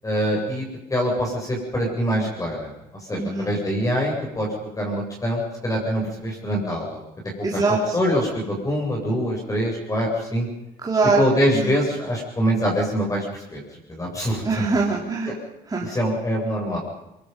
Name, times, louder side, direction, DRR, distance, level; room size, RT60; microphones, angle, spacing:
voice 1, 0.0-2.7 3.0-4.5 4.7-7.0 7.4-7.6 7.9-10.5 11.2-13.6 13.9-14.6 15.8-16.8, equal, 20° left, -1 dB, 7.9 m, -24 dB
voice 2, 3.2-3.5 7.4-8.0 10.8-11.2 11.5-11.7 14.4-15.3 15.7-15.9, right 3 dB, 20° right, -2 dB, 3.9 m, -22 dB
24.0 x 23.0 x 5.6 m, 0.88 s
cardioid pair, 110°, 17 cm